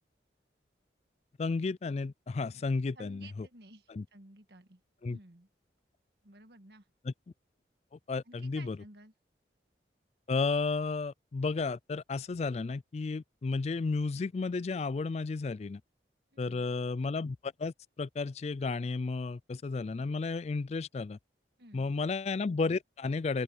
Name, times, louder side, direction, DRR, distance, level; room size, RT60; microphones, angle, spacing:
voice 1, 1.4-3.5 3.9-4.0 5.0-5.2 7.0-7.1 8.1-8.8 10.3-15.8 16.4-21.2 21.7-23.4, left 4 dB, 35° left, 0.3 m, -33 dB
voice 2, 2.9-4.8 5.1-5.5 6.2-6.8 8.3-9.1 16.3-16.7 21.6-21.9, right 2 dB, 65° right, 1.8 m, -55 dB
open air
head